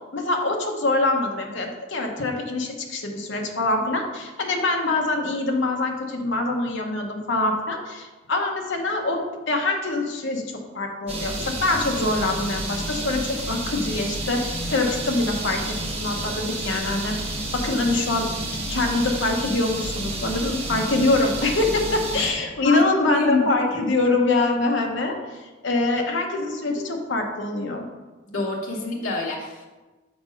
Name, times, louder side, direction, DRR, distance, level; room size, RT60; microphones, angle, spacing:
voice 1, 0.1-18.3 18.7-27.8, left 2 dB, 65° left, 2 dB, 1.0 m, -24 dB
sound 1, 11.1-22.3, right 1 dB, 30° right, 1.0 m, -30 dB
voice 2, 22.6-23.4 28.3-29.7, left 3 dB, 90° left, -2 dB, 1.0 m, -26 dB
6.1 x 4.1 x 5.2 m, 1.2 s
head